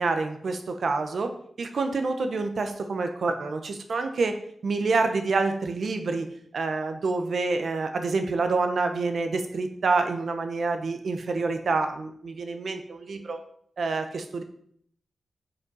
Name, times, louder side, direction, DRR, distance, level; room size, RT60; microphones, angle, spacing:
voice 1, 0.0-4.4 4.6-6.3 6.5-13.4 13.8-14.4, right 3 dB, 70° right, 7 dB, 1.0 m, -27 dB
7.4 x 5.4 x 5.5 m, 0.64 s
cardioid pair, 80°, 0 cm